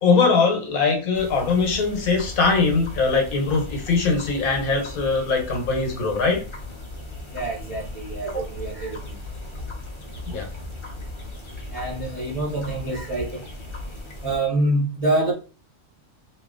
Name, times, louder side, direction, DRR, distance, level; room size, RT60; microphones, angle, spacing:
voice 1, 0.0-6.4 10.3-10.5, left 4 dB, 70° left, 1.3 m, -21 dB
sound 1, 1.1-14.4, left 2 dB, 35° left, 0.4 m, -37 dB
voice 2, 7.3-9.2 11.7-13.5 14.2-15.3, right 1 dB, 25° right, 1.0 m, -26 dB
2.9 x 2.6 x 3.6 m
omnidirectional pair, 1.6 m